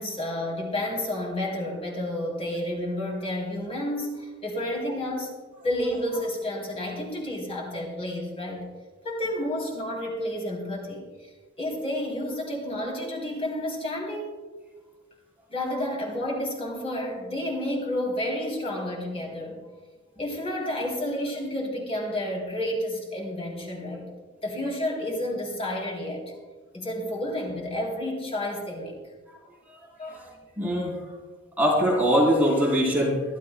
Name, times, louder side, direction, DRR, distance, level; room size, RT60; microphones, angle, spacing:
voice 1, 0.0-5.3 5.6-8.7 9.0-11.1 11.6-14.4 15.5-19.6 20.2-24.1 24.4-26.2 26.7-29.0 30.0-30.2, left 1 dB, 30° left, -2 dB, 3.1 m, -30 dB
voice 2, 30.6-31.0 31.6-33.2, equal, 10° right, -4 dB, 3.2 m, -22 dB
24.0 x 12.0 x 2.3 m, 1.3 s
head